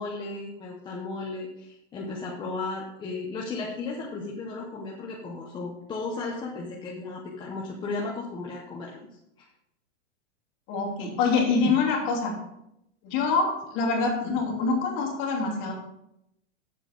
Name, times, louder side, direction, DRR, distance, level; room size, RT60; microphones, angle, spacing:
voice 1, 0.0-9.1 11.6-11.7, left 3 dB, 10° left, -3 dB, 0.8 m, -35 dB
voice 2, 10.7-12.3 13.0-15.7, left 4 dB, 35° left, -2 dB, 3.0 m, -25 dB
8.5 x 7.7 x 5.2 m, 0.81 s
supercardioid pair, 165°, 36 cm